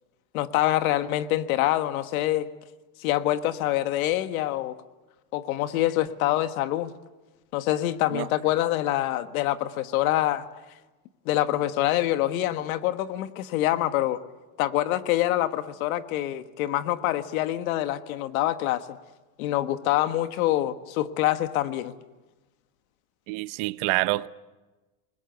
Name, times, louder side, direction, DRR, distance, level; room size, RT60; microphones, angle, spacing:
voice 1, 0.3-2.5 3.0-4.7 5.3-6.9 7.5-10.4 11.2-14.2 14.6-18.8 19.4-21.9, left 14 dB, 90° left, 1.5 m, -25 dB
voice 2, 23.3-24.3, right 20 dB, 50° right, 0.8 m, -27 dB
29.0 x 20.5 x 8.0 m
cardioid pair, 160°, 41 cm